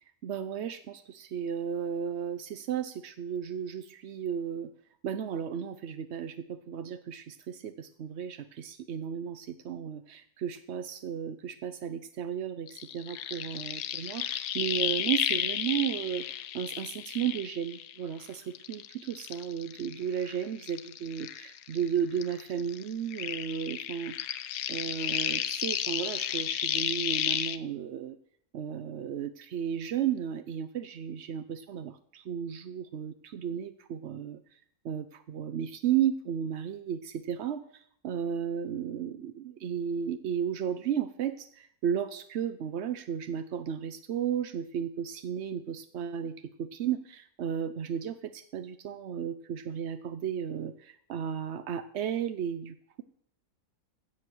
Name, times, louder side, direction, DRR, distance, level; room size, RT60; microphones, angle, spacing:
voice 1, 0.2-4.7 5.0-16.3 16.5-24.2 24.7-28.2 28.5-34.4 34.8-53.0, right 8 dB, 65° right, 10 dB, 0.6 m, -34 dB
sound 1, 12.7-18.2 18.6-21.9 22.2-27.6, left 11 dB, 85° left, 1.4 m, -33 dB
16.0 x 7.2 x 6.2 m, 0.65 s
omnidirectional pair, 1.9 m